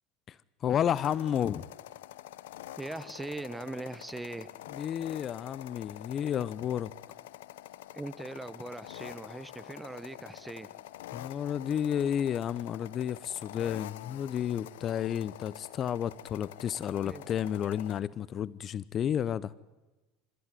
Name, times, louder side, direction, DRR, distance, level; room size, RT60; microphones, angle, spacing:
voice 1, 0.3-1.6 4.7-6.9 11.1-19.5, left 9 dB, 45° left, 0.7 m, -31 dB
sound 1, 0.9-18.0, left 14 dB, 80° left, 0.8 m, -47 dB
voice 2, 2.8-4.5 7.9-10.7 17.0-17.3, right 2 dB, 10° right, 1.3 m, -40 dB
27.0 x 14.5 x 9.8 m
hypercardioid pair, 85°, 0 cm